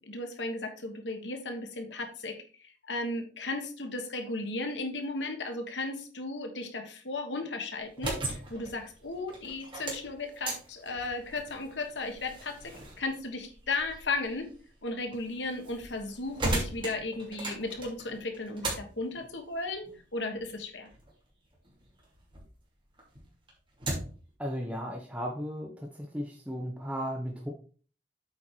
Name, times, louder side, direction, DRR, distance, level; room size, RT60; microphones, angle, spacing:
voice 1, 0.0-14.5 14.8-19.9 20.1-20.9, left 2 dB, 85° left, 5 dB, 1.4 m, -35 dB
sound 1, 7.8-22.5 22.9-24.3, right 2 dB, 30° right, 2.7 m, -39 dB
voice 2, 24.4-25.7 26.1-27.5, equal, 5° right, 0 dB, 1.0 m, -35 dB
8.3 x 4.6 x 4.6 m, 0.40 s
head